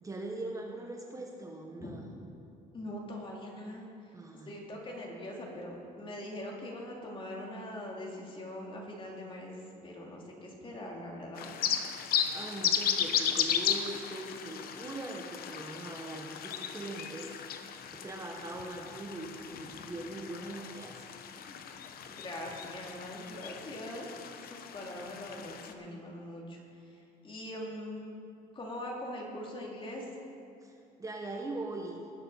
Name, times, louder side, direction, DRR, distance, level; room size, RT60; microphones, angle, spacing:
voice 1, 0.0-2.1 4.1-4.5 12.3-17.4 17.9-21.1 30.6-32.0, right 2 dB, 20° right, 1 dB, 1.2 m, -41 dB
voice 2, 2.7-3.9 4.5-9.5 9.8-11.6 21.5-21.6 22.2-28.1 28.5-30.1, left 1 dB, 30° left, -1 dB, 2.7 m, -42 dB
sound 1, 11.4-25.7, left 8 dB, 65° left, 0.9 m, -35 dB
19.0 x 6.7 x 5.6 m, 2.5 s
cardioid pair, 110°, 17 cm